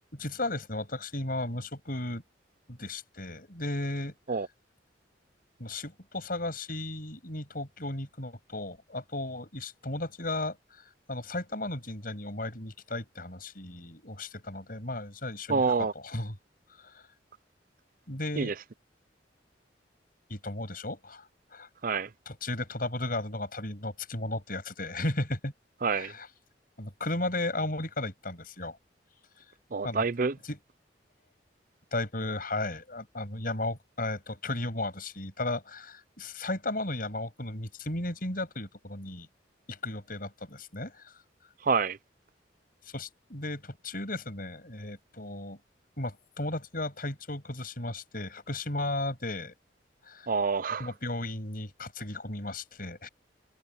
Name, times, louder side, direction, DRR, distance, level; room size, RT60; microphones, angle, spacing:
voice 1, 0.1-2.2 2.7-4.1 5.6-10.6 11.1-15.6 16.0-16.4 16.8-17.0 18.1-18.5 20.3-21.3 21.5-21.7 22.3-25.5 25.9-26.3 26.8-28.8 29.8-30.0 30.5-30.6 31.9-39.3 39.7-41.1 42.9-45.6 46.0-49.5 50.1-50.3 50.8-53.1, left 2 dB, 50° left, 7.1 m, -35 dB
voice 2, 15.5-15.9 18.4-18.5 21.8-22.1 25.8-26.1 29.7-30.4 41.6-42.0 50.3-50.9, right 4 dB, 45° right, 0.6 m, -27 dB
head